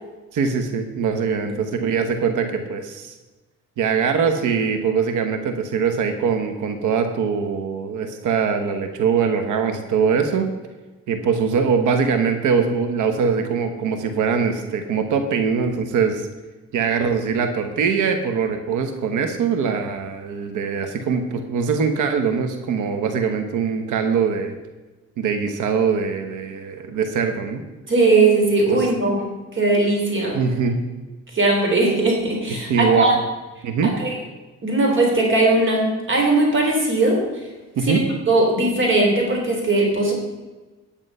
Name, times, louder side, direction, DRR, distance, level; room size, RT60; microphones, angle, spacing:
voice 1, 0.3-3.1 3.8-10.5 11.1-16.2 16.7-24.5 25.2-27.6 28.7-28.9 30.3-30.8 32.7-33.1 33.6-33.9 37.8-38.0, right 6 dB, 80° right, 7 dB, 1.2 m, -22 dB
voice 2, 27.9-29.2 29.5-30.4 31.3-33.2 33.8-34.1 34.6-37.2 37.8-38.0 38.3-40.1, right 2 dB, 40° right, 0 dB, 3.5 m, -19 dB
10.0 x 8.9 x 5.5 m, 1.2 s
cardioid pair, 90°, 30 cm